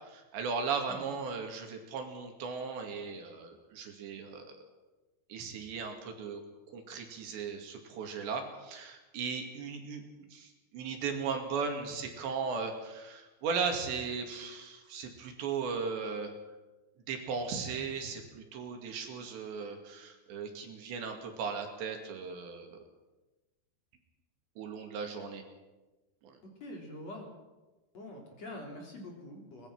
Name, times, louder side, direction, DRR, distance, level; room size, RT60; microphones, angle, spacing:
voice 1, 0.0-4.6 5.3-6.4 6.7-10.0 10.3-16.3 17.1-22.8 24.6-25.4 26.2-26.4, right 5 dB, 70° right, 4 dB, 4.5 m, -37 dB
voice 2, 26.6-27.3 27.9-29.7, left 1 dB, 35° left, 0 dB, 4.5 m, -45 dB
23.5 x 20.0 x 6.2 m, 1.1 s
omnidirectional pair, 5.4 m